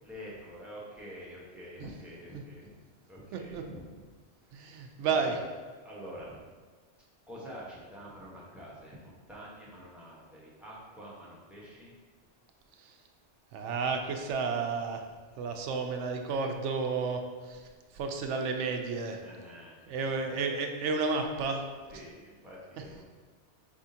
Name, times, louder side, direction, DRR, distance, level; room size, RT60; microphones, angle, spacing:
voice 1, 0.0-2.7 3.1-4.1 4.4-5.4 5.8-6.3 7.3-11.9 19.2-20.4 21.9-23.0, equal, ahead, -7 dB, 1.0 m, -47 dB
voice 2, 3.3-3.6 4.5-5.4 12.8-13.0 13.5-15.0 15.4-17.7 17.9-19.2 19.9-21.6, right 4 dB, 85° right, 4 dB, 0.9 m, -32 dB
5.0 x 3.6 x 2.7 m, 1.5 s
omnidirectional pair, 1.2 m